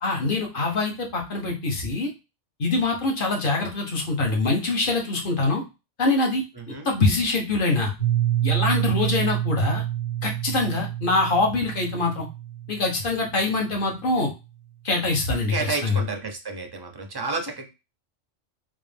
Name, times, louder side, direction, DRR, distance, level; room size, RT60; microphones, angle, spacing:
voice 1, 0.0-2.1 2.6-5.6 6.0-6.4 6.7-7.9 8.4-9.8 10.2-12.3 12.7-14.3 14.8-15.5 15.8-16.0, left 3 dB, 45° left, 1 dB, 1.1 m, -24 dB
voice 2, 6.6-6.9 15.5-17.7, right 4 dB, 35° right, 3 dB, 0.4 m, -31 dB
Piano, 8.0-13.6, right 13 dB, 75° left, 2.1 m, -27 dB
3.7 x 2.6 x 3.3 m, 0.27 s
omnidirectional pair, 1.3 m